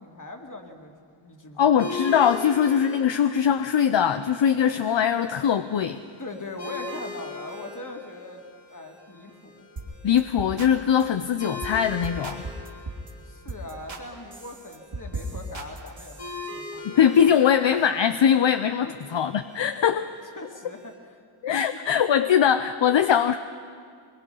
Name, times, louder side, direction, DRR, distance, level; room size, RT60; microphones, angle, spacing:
voice 1, 0.0-1.9 6.2-8.4 8.7-9.7 13.2-17.0 18.9-19.0 19.7-19.9 20.4-21.2 21.7-22.0, left 2 dB, 40° left, 2 dB, 2.5 m, -41 dB
voice 2, 1.6-6.0 10.0-12.5 16.8-20.1 21.4-23.4, left 8 dB, 65° left, 10 dB, 0.7 m, -21 dB
sound 1, 1.8-20.9, left 2 dB, 90° left, 7.2 m, -41 dB
sound 2, 9.8-9.9 10.2-10.7 11.0-11.2 11.6-11.8 12.0-13.1 13.5-14.0 14.3-16.3, right 2 dB, 65° right, 2.8 m, -36 dB
22.5 x 22.5 x 5.6 m, 2.1 s
wide cardioid pair, 75°, 49 cm